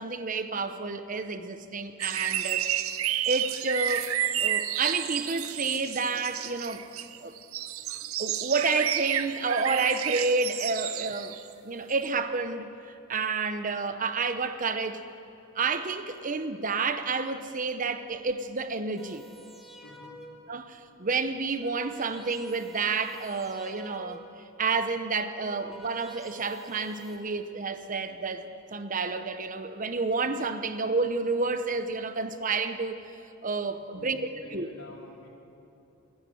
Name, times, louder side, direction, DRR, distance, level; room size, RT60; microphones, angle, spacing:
voice 1, 0.0-2.7 3.3-4.1 4.4-6.8 7.2-7.3 8.2-11.4 11.6-12.7 13.1-15.0 15.5-19.3 20.5-24.2 24.6-33.0 33.4-34.7, right 4 dB, 40° right, 0.9 m, -30 dB
sound 1, 2.0-11.5 12.0-12.1, right 11 dB, 85° right, 0.7 m, -31 dB
sound 2, 19.0-20.6 21.3-24.5 25.2-27.2, equal, ahead, 2.0 m, -49 dB
voice 2, 19.8-20.2 33.9-35.3, left 2 dB, 80° left, 4.1 m, -48 dB
27.5 x 10.5 x 9.2 m
head